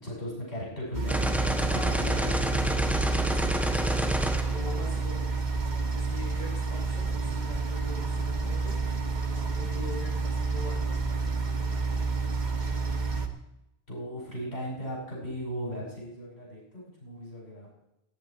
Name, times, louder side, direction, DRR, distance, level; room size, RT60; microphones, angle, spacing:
voice 1, 0.0-1.8 13.9-17.7, equal, 85° left, -5 dB, 6.5 m, -37 dB
sound 1, 0.9-13.3, right 4 dB, 45° right, 1.4 m, -29 dB
sound 2, 1.1-5.3, equal, ahead, 1.4 m, -29 dB
voice 2, 1.7-3.8 4.5-5.2 5.5-8.8 9.3-12.2, left 2 dB, 45° left, -6 dB, 6.2 m, -43 dB
18.0 x 10.0 x 4.4 m, 0.88 s
omnidirectional pair, 1.1 m